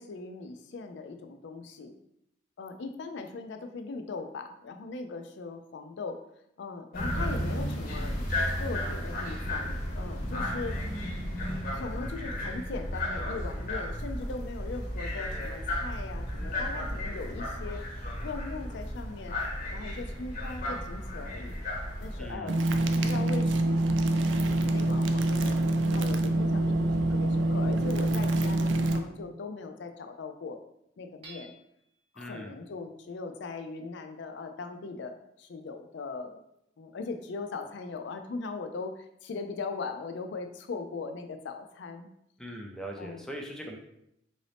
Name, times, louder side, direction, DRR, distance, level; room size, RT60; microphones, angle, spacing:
voice 1, 0.0-1.9 2.6-6.2 6.6-10.8 11.7-17.8 18.2-19.4 19.7-21.6 22.0-22.6 22.9-23.8 24.4-25.6 25.9-30.6 31.0-31.5 32.1-36.4 36.8-42.1 43.0-43.3, left 4 dB, 65° left, 7 dB, 0.4 m, -39 dB
sound 1, 6.9-22.3, left 1 dB, 50° left, 0.8 m, -34 dB
voice 2, 22.2-22.6 32.2-32.6 42.4-43.8, equal, 5° left, 1 dB, 0.4 m, -40 dB
sound 2, 22.5-29.0, right 1 dB, 70° right, 0.4 m, -26 dB
Hammer / Chink clink, 31.2-32.0, right 3 dB, 30° right, 0.9 m, -50 dB
3.9 x 2.6 x 3.3 m, 0.78 s
head